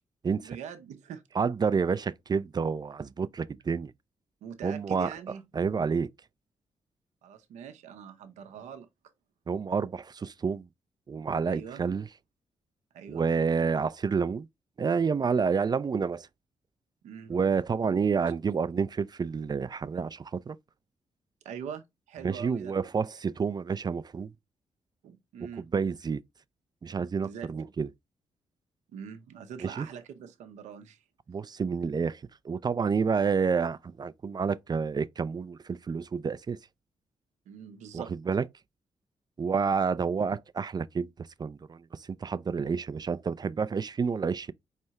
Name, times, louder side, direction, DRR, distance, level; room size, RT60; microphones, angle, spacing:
voice 1, 0.4-1.2 4.4-5.4 7.2-8.9 11.5-11.8 12.9-13.3 17.0-17.4 21.4-22.7 25.0-25.7 27.2-27.5 28.9-31.0 37.5-38.1, right 8 dB, 85° right, 0.6 m, -43 dB
voice 2, 1.4-3.9 4.6-5.1 5.5-6.1 9.5-10.7 11.1-12.1 13.1-14.5 14.8-16.3 17.3-20.6 22.2-24.3 25.4-26.2 26.8-27.9 29.6-29.9 31.3-36.6 37.9-38.5 39.4-44.5, right 5 dB, 35° right, 0.4 m, -29 dB
4.5 x 3.3 x 2.8 m
supercardioid pair, 50°, 12 cm